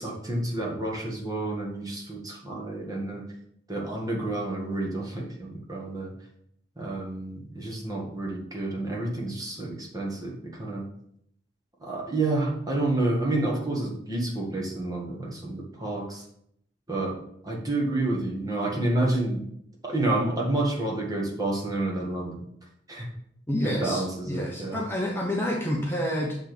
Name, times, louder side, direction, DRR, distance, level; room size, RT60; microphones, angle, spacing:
voice 1, 0.0-3.2 3.7-6.1 6.8-10.8 11.8-16.2 16.9-17.2 17.4-19.4 19.8-22.4 22.9-23.1 23.6-24.8, right 2 dB, 20° right, -2 dB, 1.6 m, -29 dB
voice 2, 23.5-26.4, left 1 dB, 15° left, -2 dB, 0.8 m, -28 dB
7.2 x 3.5 x 6.0 m, 0.71 s
head